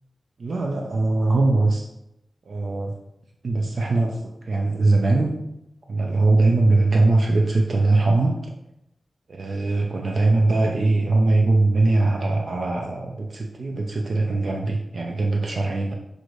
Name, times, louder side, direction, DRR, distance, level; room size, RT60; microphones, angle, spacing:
voice 1, 0.4-1.9 2.5-2.9 3.4-5.4 5.9-8.4 9.3-15.9, right 2 dB, 60° right, 1 dB, 0.4 m, -21 dB
6.2 x 2.6 x 3.1 m, 0.84 s
wide cardioid pair, 120°, 0 cm